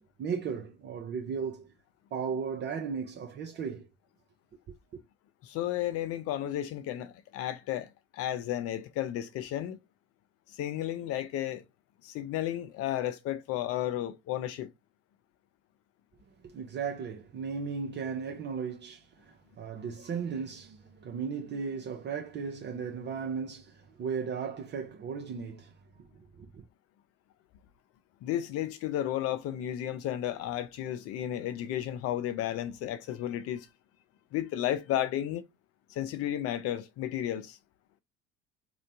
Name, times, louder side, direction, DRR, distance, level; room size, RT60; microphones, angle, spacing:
voice 1, 0.0-1.7 2.1-3.9 4.9-5.0 16.4-25.7 26.0-26.6, right 6 dB, 35° right, 0.6 m, -36 dB
voice 2, 5.4-7.9 8.1-9.8 10.6-11.6 12.0-14.7 28.2-33.7 34.3-35.4 35.9-37.6, left 12 dB, 50° left, 0.5 m, -33 dB
3.0 x 2.0 x 2.6 m
figure-of-eight pair, 55°, 31 cm